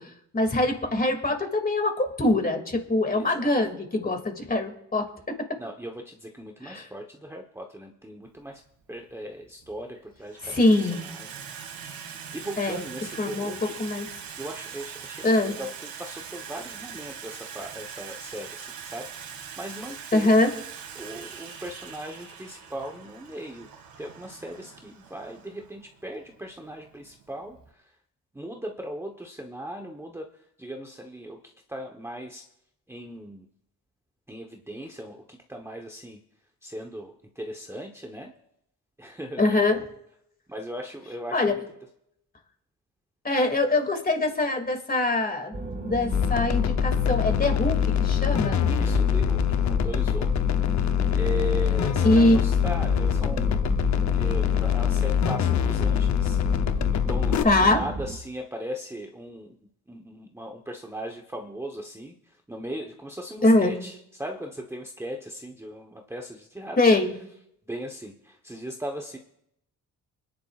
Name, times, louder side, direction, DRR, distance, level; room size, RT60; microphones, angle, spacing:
voice 1, 0.0-5.4 6.6-6.9 10.4-11.1 12.6-12.9 13.2-14.1 15.2-15.5 20.1-20.5 39.4-39.8 41.3-41.6 43.2-48.7 52.0-52.4 57.4-57.8 63.4-63.7 66.8-67.1, left 2 dB, 25° left, 4 dB, 2.4 m, -23 dB
voice 2, 3.1-3.5 5.6-8.6 8.9-11.4 12.3-13.8 14.4-20.4 20.9-23.7 24.0-28.0 28.3-32.5 32.9-33.5 34.3-36.2 36.6-38.3 39.0-39.5 40.5-41.6 48.7-53.6 54.1-56.4 56.9-59.6 59.9-66.8 67.7-69.2, right 1 dB, 5° right, 2 dB, 1.1 m, -38 dB
Water tap faucet / Sink (filling or washing), 8.3-8.5 9.4-9.8 10.1-27.7, right 7 dB, 75° right, 2.2 m, -42 dB
sound 1, 45.5-58.2, right 2 dB, 25° right, 2.0 m, -33 dB
sound 2, 46.1-57.4, left 10 dB, 50° left, 0.8 m, -24 dB
25.0 x 10.5 x 2.5 m, 0.77 s
cardioid pair, 100°, 35 cm